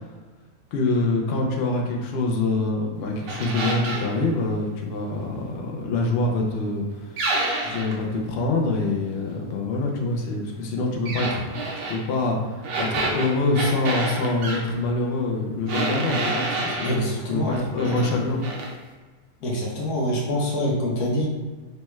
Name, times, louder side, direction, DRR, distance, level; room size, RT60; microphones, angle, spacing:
voice 1, 0.7-7.3 7.6-11.5 11.9-18.4, left 2 dB, 70° left, 0 dB, 0.6 m, -25 dB
sound 1, 3.3-4.1 7.2-8.0 11.1-12.0 12.6-14.6 15.7-17.0 17.5-18.1 18.4-18.7, right 2 dB, 65° right, 0.6 m, -28 dB
voice 2, 16.8-17.6 17.9-18.0 19.4-21.3, equal, 85° left, -3 dB, 1.3 m, -25 dB
3.2 x 2.2 x 3.0 m, 1.3 s
omnidirectional pair, 1.6 m